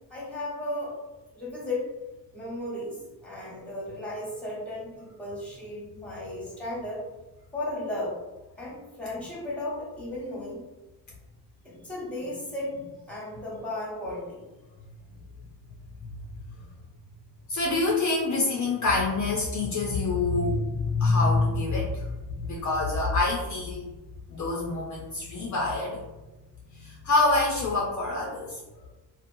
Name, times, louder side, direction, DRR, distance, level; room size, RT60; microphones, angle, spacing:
voice 1, 0.1-1.0 1.3-1.9 2.3-7.0 7.5-8.1 8.6-10.6 11.6-14.4 15.2-15.3 16.6-16.7 23.8-23.9, left 1 dB, 5° left, -6 dB, 0.9 m, -35 dB
voice 2, 17.5-23.9 24.3-26.0 26.7-28.6, left 3 dB, 50° left, -2 dB, 0.5 m, -26 dB
2.8 x 2.0 x 2.5 m, 1.1 s
cardioid pair, 130°, 40 cm